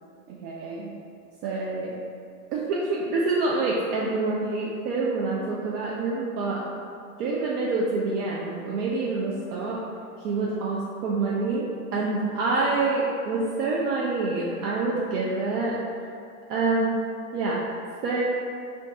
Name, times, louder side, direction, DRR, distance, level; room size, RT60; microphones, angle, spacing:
voice 1, 0.3-0.9 1.4-2.0 2.5-6.6 7.2-9.8 10.2-11.6 11.9-15.8 16.5-17.0 17.3-17.6 18.0-18.2, right 3 dB, 75° right, -4 dB, 0.6 m, -26 dB
2.5 x 2.3 x 3.7 m, 2.3 s
supercardioid pair, 130°, 46 cm